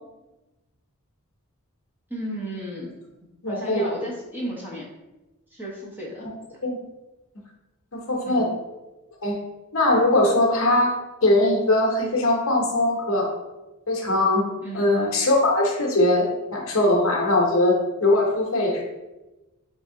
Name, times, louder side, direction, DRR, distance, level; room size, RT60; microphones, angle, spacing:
voice 1, 2.1-2.9 3.5-4.9 5.5-6.2 8.2-8.5 14.6-14.9, equal, 10° right, -6 dB, 1.0 m, -34 dB
voice 2, 3.4-3.9 6.6-6.8 7.9-8.5 9.2-9.4 9.7-11.0 11.2-13.3 13.9-14.5 14.7-18.8, left 1 dB, 60° left, -1 dB, 0.9 m, -21 dB
3.4 x 3.4 x 3.7 m, 1.1 s
head